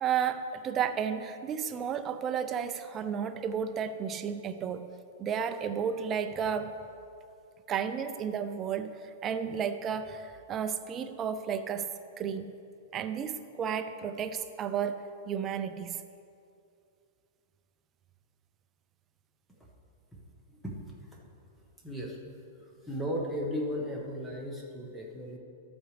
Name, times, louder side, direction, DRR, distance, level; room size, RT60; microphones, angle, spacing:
voice 1, 0.0-4.9 5.2-6.7 7.7-11.9 12.2-12.5 12.9-16.0, right 7 dB, 20° right, 9 dB, 0.4 m, -32 dB
voice 2, 20.5-21.2 21.8-22.2 22.6-25.4, equal, ahead, -3 dB, 1.2 m, -36 dB
13.0 x 7.9 x 3.4 m, 2.5 s
supercardioid pair, 160°, 0 cm